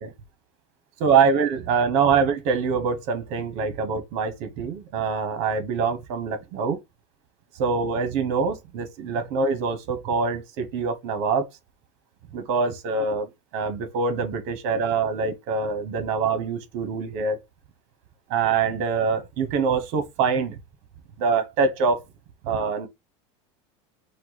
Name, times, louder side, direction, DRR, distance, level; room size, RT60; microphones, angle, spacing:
voice 1, 1.0-6.8 7.6-11.5 12.3-17.4 18.3-20.6 21.2-22.0 22.4-22.9, right 5 dB, 45° right, 1.1 m, -24 dB
5.4 x 2.3 x 4.0 m
supercardioid pair, 175°, 15 cm